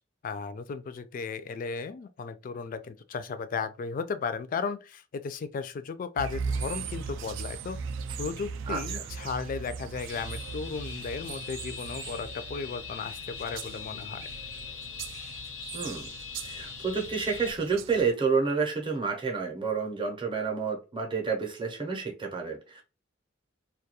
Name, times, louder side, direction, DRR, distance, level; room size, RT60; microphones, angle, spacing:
voice 1, 0.2-7.8 8.2-14.3, left 5 dB, 45° left, 0.3 m, -35 dB
sound 1, 6.2-18.1, right 5 dB, 70° right, 0.3 m, -39 dB
voice 2, 8.7-9.0 15.7-16.1 16.4-22.8, right 5 dB, 25° right, 0.6 m, -29 dB
sound 2, 10.1-17.5, left 7 dB, 90° left, 0.6 m, -42 dB
2.2 x 2.2 x 2.8 m
head